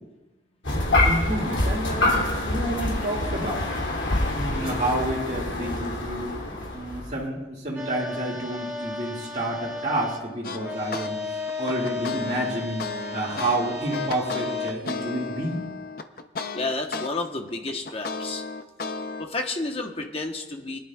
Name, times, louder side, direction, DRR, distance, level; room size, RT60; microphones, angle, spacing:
sound 1, 0.6-7.2, left 1 dB, 90° left, 2.8 m, -26 dB
voice 1, 1.0-3.8 4.3-6.3 6.7-11.2 11.6-12.9 13.1-15.6, right 1 dB, 40° right, -6 dB, 2.2 m, -29 dB
sound 2, 7.7-10.2 10.6-14.7, left 4 dB, 10° right, 1.3 m, -34 dB
sound 3, 10.4-11.1 11.5-17.1 17.5-19.3, left 4 dB, 50° left, 0.6 m, -33 dB
voice 2, 16.5-18.4 19.2-20.8, left 2 dB, 30° left, 3 dB, 1.1 m, -31 dB
21.5 x 11.0 x 2.4 m, 1.1 s
head